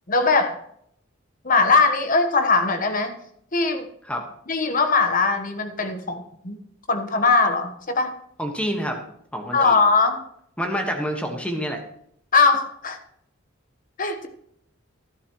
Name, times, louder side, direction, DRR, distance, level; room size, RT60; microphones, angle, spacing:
voice 1, 0.1-0.6 1.4-3.2 3.5-3.9 4.5-6.6 6.9-8.1 9.5-10.2 12.3-13.0 14.0-14.3, left 4 dB, 40° left, 7 dB, 1.2 m, -20 dB
voice 2, 8.4-9.0 9.3-9.8 10.6-11.8, equal, 5° left, 3 dB, 1.4 m, -27 dB
12.5 x 11.0 x 3.1 m, 0.70 s
head